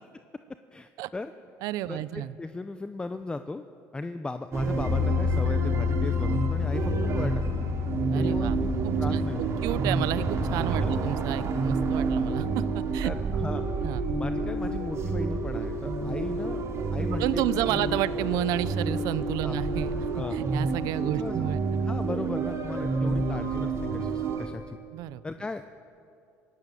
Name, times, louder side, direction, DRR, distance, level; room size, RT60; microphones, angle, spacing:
voice 1, 0.7-1.3 1.9-3.6 3.9-7.4 8.1-8.7 9.0-9.5 10.7-10.9 13.0-13.6 14.2-16.6 16.9-17.4 19.4-19.6 20.1-20.4 21.0-21.5 21.8-24.8 25.2-25.8, left 3 dB, 15° left, 9 dB, 0.8 m, -36 dB
voice 2, 1.6-2.3 8.1-8.6 8.8-13.1 13.8-14.0 17.2-21.6 24.9-25.2, right 14 dB, 70° right, 17 dB, 0.8 m, -31 dB
sound 1, 4.5-24.5, right 3 dB, 50° right, 2.9 m, -29 dB
Bass guitar, 4.9-11.1, left 8 dB, 50° left, 5.0 m, -30 dB
25.5 x 15.5 x 9.2 m, 2.6 s
supercardioid pair, 95°, 6 cm